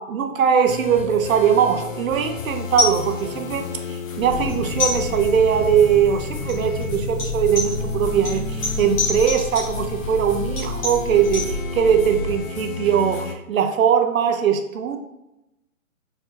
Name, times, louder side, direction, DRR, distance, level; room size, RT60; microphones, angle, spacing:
voice 1, 0.0-15.0, right 8 dB, 75° right, 6 dB, 0.6 m, -20 dB
sound 1, 0.7-13.4, left 5 dB, 70° left, 0.7 m, -32 dB
sound 2, 2.5-11.5, left 3 dB, 25° left, 1.0 m, -31 dB
sound 3, 4.1-12.4, left 2 dB, 5° left, 0.8 m, -32 dB
4.4 x 2.2 x 3.9 m, 0.92 s
hypercardioid pair, 170°, 41 cm